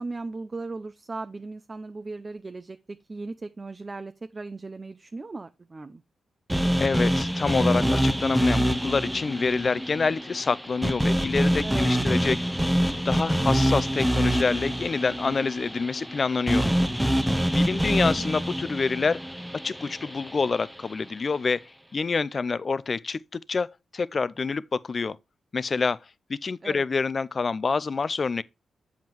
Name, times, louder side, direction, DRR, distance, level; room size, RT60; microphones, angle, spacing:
voice 1, 0.0-6.0 11.6-11.9 26.6-26.8, right 3 dB, 35° right, 0.5 m, -37 dB
sound 1, 6.5-20.7, equal, 5° right, 0.8 m, -25 dB
voice 2, 6.8-12.4 13.0-16.7 17.5-19.2 19.6-21.6 21.9-23.7 23.9-25.2 25.5-26.0 26.3-28.4, left 4 dB, 50° left, 0.4 m, -27 dB
7.5 x 7.2 x 3.0 m
cardioid pair, 55°, 0 cm